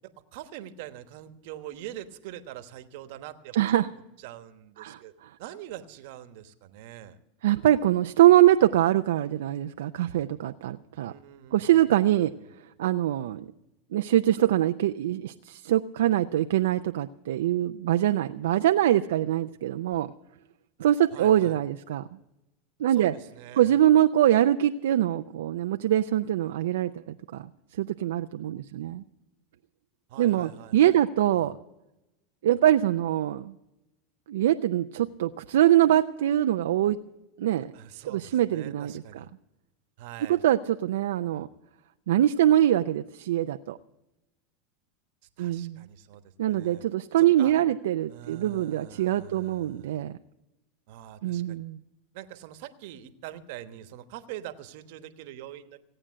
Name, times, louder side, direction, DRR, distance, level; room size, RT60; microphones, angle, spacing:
voice 1, 0.3-3.6 4.2-5.1 5.4-7.2 11.1-12.4 21.1-21.6 22.9-23.8 30.1-31.0 31.3-31.5 37.5-39.3 40.0-40.4 45.4-46.8 47.2-47.5 48.1-50.0 50.9-51.6 52.1-55.8, right 12 dB, 65° right, 10 dB, 1.2 m, -44 dB
voice 2, 3.5-3.9 4.8-5.0 7.4-11.1 11.5-12.3 12.8-13.5 13.9-20.1 20.8-22.1 22.8-23.1 23.6-27.5 27.8-29.0 30.2-31.6 32.4-33.5 34.3-37.0 37.4-37.7 38.1-39.2 40.3-41.5 42.1-43.8 45.4-45.9 46.4-50.1 51.2-51.8, right 12 dB, 85° right, 8 dB, 0.5 m, -23 dB
17.5 x 8.8 x 7.5 m, 0.94 s
supercardioid pair, 110°, 0 cm